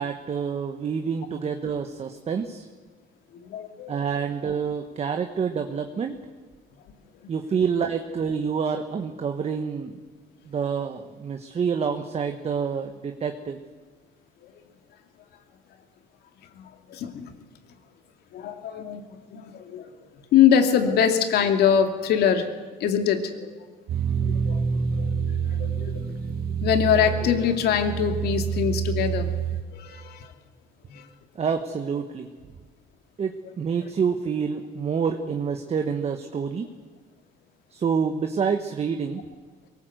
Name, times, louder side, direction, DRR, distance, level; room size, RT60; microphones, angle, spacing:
voice 1, 0.0-2.7 3.9-6.2 7.3-10.0 10.5-13.6 31.3-32.3 33.2-36.7 37.7-39.2, right 6 dB, 40° right, 6 dB, 1.4 m, -27 dB
voice 2, 3.3-3.9 14.4-14.5 16.5-17.3 18.3-19.0 19.3-19.9 20.3-22.5 22.8-23.5 24.2-24.6 25.0-25.1 25.6-26.0 26.6-29.3 29.7-30.3 30.9-31.1, left 8 dB, 75° left, 6 dB, 2.4 m, -23 dB
sound 1, 23.9-29.6, right 7 dB, 60° right, 2.2 m, -27 dB
22.5 x 18.5 x 8.0 m, 1.4 s
cardioid pair, 110°, 17 cm